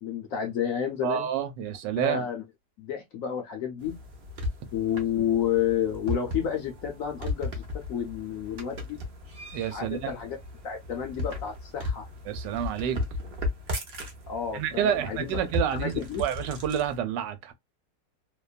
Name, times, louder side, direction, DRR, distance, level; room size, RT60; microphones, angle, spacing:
voice 1, 0.0-1.3 2.0-2.4 2.8-4.0 4.7-7.6 7.9-9.0 9.7-10.4 10.6-12.1 14.3-15.5 15.8-16.2, left 8 dB, 65° left, 0.8 m, -30 dB
voice 2, 1.0-2.2 9.5-10.1 12.3-13.0 14.5-17.5, right 9 dB, 85° right, 1.3 m, -29 dB
sound 1, 3.8-17.0, left 2 dB, 50° right, 0.7 m, -36 dB
2.9 x 2.2 x 2.3 m
omnidirectional pair, 1.9 m